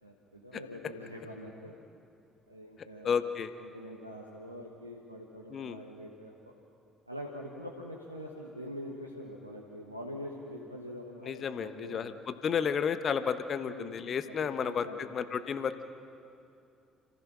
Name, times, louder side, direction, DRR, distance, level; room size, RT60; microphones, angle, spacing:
voice 1, 0.0-1.8 2.5-3.2 3.6-6.4 7.1-12.1 13.6-14.0 14.2-15.1, equal, 90° right, -3 dB, 1.4 m, -44 dB
voice 2, 3.0-3.5 5.5-5.8 11.2-15.8, left 7 dB, 45° left, 11 dB, 1.1 m, -32 dB
30.0 x 14.5 x 6.2 m, 2.6 s
figure-of-eight pair, 50°, 0 cm